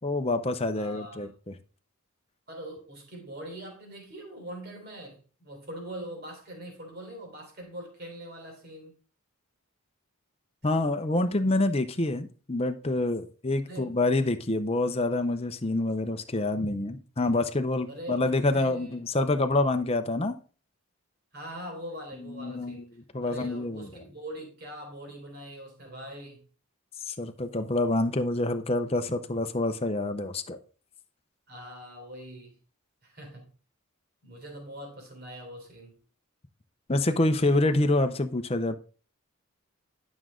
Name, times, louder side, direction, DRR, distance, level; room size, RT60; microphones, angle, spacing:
voice 1, 0.0-1.5 10.6-20.3 22.2-22.8 23.1-23.9 27.1-30.6 36.9-38.8, left 2 dB, 25° left, 0.7 m, -27 dB
voice 2, 0.7-1.3 2.5-8.9 13.6-13.9 17.9-19.0 21.3-22.9 23.2-26.4 31.5-32.6 33.0-33.5 34.2-36.0, right 1 dB, 45° right, 3.6 m, -42 dB
11.5 x 6.2 x 3.8 m
head